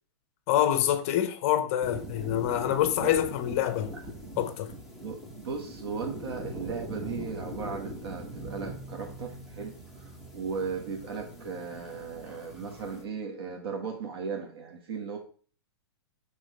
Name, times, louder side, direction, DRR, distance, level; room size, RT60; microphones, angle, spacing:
voice 1, 0.5-3.9 4.4-4.7, left 11 dB, 30° left, 0.7 m, -26 dB
sound 1, 1.8-13.1, right 1 dB, 5° right, 0.7 m, -42 dB
voice 2, 5.0-15.2, right 5 dB, 60° right, 1.5 m, -37 dB
6.3 x 3.6 x 5.2 m
hypercardioid pair, 165°, 14 cm